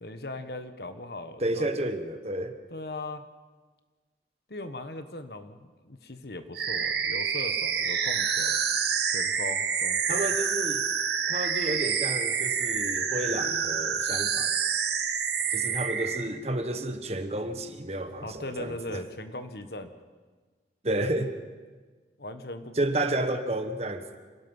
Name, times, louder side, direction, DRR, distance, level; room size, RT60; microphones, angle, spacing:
voice 1, 0.0-1.7 2.7-3.2 4.5-8.6 9.1-10.3 18.2-19.9 22.2-23.1, left 2 dB, 60° left, 9 dB, 1.3 m, -39 dB
voice 2, 1.4-2.5 10.1-10.9 11.3-14.5 15.5-19.0 20.8-21.3 22.7-24.2, right 1 dB, 35° right, 8 dB, 1.3 m, -31 dB
sound 1, 6.5-16.2, right 7 dB, 65° right, 1.8 m, -28 dB
27.0 x 18.0 x 5.6 m, 1.4 s
head